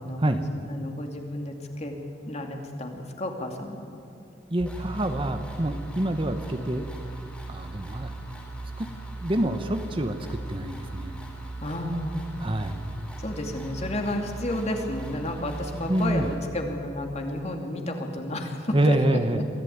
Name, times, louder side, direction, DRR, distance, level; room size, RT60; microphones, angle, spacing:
voice 1, 0.0-1.9 2.3-4.0 11.6-12.3 13.2-19.2, left 1 dB, 35° left, 3 dB, 2.6 m, -32 dB
voice 2, 4.5-6.9 7.5-8.1 8.8-8.9 9.2-11.2 12.4-12.8 15.9-16.3 18.7-19.4, right 1 dB, 30° right, 8 dB, 1.1 m, -26 dB
sound 1, 4.6-16.4, right 2 dB, 10° left, 4.0 m, -38 dB
23.5 x 15.5 x 9.4 m, 2.4 s
head